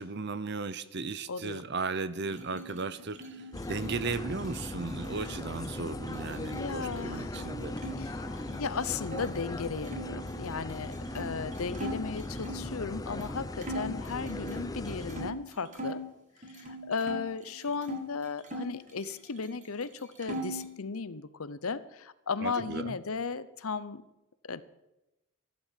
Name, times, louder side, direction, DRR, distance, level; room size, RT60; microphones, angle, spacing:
voice 1, 0.0-3.2 3.6-7.7 22.4-23.0, right 4 dB, 50° right, 15 dB, 0.8 m, -35 dB
voice 2, 1.3-1.7 6.4-7.4 7.7-16.0 16.5-24.0 24.5-24.6, left 5 dB, 80° left, 15 dB, 0.8 m, -36 dB
sound 1, 2.2-8.0 8.3-9.3 9.8-12.7 13.2-13.3 13.6-16.0 16.4-18.0 18.4-19.6 19.8-20.7, right 1 dB, 35° right, 2.2 m, -42 dB
sound 2, 3.5-15.3, left 1 dB, 15° left, 0.6 m, -38 dB
14.5 x 12.0 x 7.5 m, 0.95 s
head